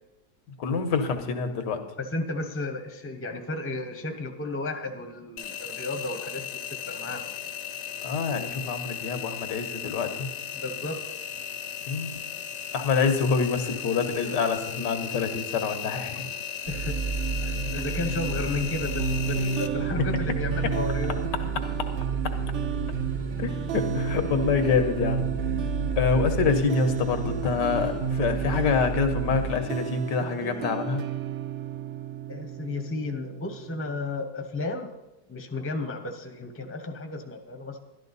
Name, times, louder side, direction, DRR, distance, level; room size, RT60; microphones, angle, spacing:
voice 1, 0.6-1.8 8.0-10.3 11.9-12.1 12.7-16.3 23.4-25.2 26.0-31.0, left 5 dB, 90° left, 7 dB, 1.7 m, -26 dB
voice 2, 2.0-7.5 10.5-11.0 16.7-17.0 17.4-21.3 32.3-34.9 35.3-37.8, left 3 dB, 10° left, 5 dB, 0.7 m, -33 dB
Engine, 5.4-19.7, left 8 dB, 55° left, 0.8 m, -36 dB
sound 1, 16.7-29.5, right 3 dB, 80° right, 3.0 m, -31 dB
sound 2, 19.0-34.0, right 12 dB, 65° right, 0.7 m, -33 dB
12.0 x 11.5 x 4.0 m, 1.0 s
omnidirectional pair, 1.8 m